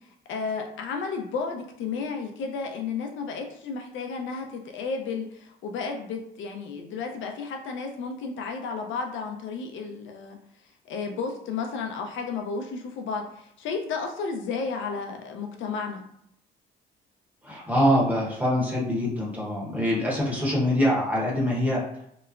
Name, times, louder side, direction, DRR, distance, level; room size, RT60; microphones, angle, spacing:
voice 1, 0.3-10.4 10.9-16.0, left 5 dB, 75° left, 3 dB, 0.6 m, -32 dB
voice 2, 17.4-21.8, equal, 10° right, -5 dB, 1.0 m, -24 dB
2.9 x 2.0 x 2.5 m, 0.74 s
cardioid pair, 90°, 20 cm